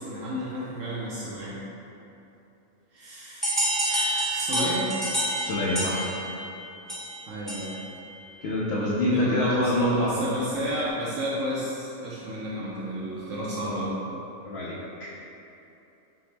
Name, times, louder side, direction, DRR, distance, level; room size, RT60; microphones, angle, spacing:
voice 1, 0.0-1.6 2.9-4.9 7.3-7.8 9.0-14.0, equal, 70° right, -7 dB, 0.9 m, -32 dB
sound 1, 3.4-7.9, right 1 dB, ahead, 0.6 m, -28 dB
voice 2, 5.4-6.1 8.4-10.2 14.4-14.8, left 1 dB, 65° left, -6 dB, 0.6 m, -25 dB
5.8 x 2.1 x 3.2 m, 2.8 s
omnidirectional pair, 1.5 m